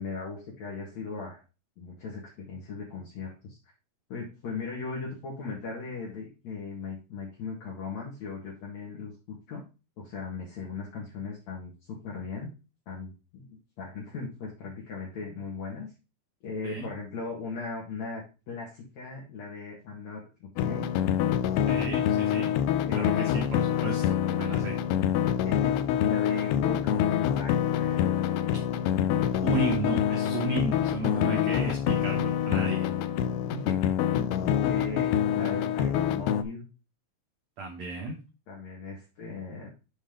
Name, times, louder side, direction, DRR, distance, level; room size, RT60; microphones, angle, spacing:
voice 1, 0.0-1.4 1.8-3.6 4.1-9.6 10.0-12.5 12.9-15.9 16.4-20.9 22.8-23.1 24.9-25.0 25.4-25.7 26.0-28.2 33.5-36.7 38.5-39.7, left 4 dB, 50° left, -3 dB, 2.5 m, -38 dB
sound 1, 20.6-36.4, left 10 dB, 80° left, 2.5 m, -26 dB
voice 2, 21.7-22.5 22.9-24.0 24.3-24.8 29.4-32.9 37.6-38.2, right 2 dB, 80° right, 1 dB, 1.5 m, -33 dB
7.7 x 4.3 x 5.0 m, 0.31 s
omnidirectional pair, 4.9 m